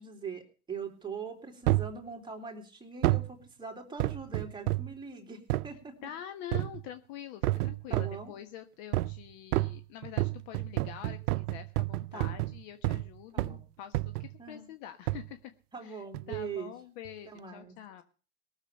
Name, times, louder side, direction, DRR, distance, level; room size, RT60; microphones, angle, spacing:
voice 1, 0.0-6.1 7.9-8.3 12.1-12.4 13.3-13.6 14.4-14.7 15.7-16.7 17.3-17.7, right 5 dB, 10° right, 3 dB, 3.0 m, -42 dB
sound 1, 1.7-2.0 3.0-3.3 4.0-5.0 5.5-5.7 6.5-6.9 7.4-8.2 8.9-9.2 9.5-13.1 13.4-13.6 13.9-14.3 15.1-15.3 16.1-16.5 17.0-17.1, right 18 dB, 80° right, 0.6 m, -30 dB
voice 2, 6.0-15.5 15.8-18.0, left 10 dB, 55° left, 8 dB, 1.4 m, -46 dB
18.0 x 7.3 x 6.9 m, 0.37 s
supercardioid pair, 120°, 45 cm